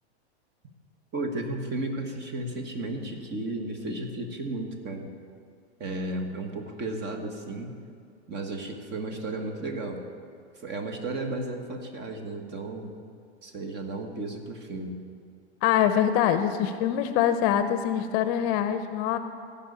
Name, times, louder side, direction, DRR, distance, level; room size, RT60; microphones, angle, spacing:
voice 1, 1.1-5.1 5.8-7.8 8.3-10.0 10.5-13.0 13.4-15.0, right 2 dB, 30° right, 4 dB, 1.6 m, -34 dB
voice 2, 15.6-19.2, left 9 dB, 45° left, 10 dB, 0.7 m, -24 dB
15.5 x 5.5 x 8.5 m, 2.3 s
hypercardioid pair, 115°, 34 cm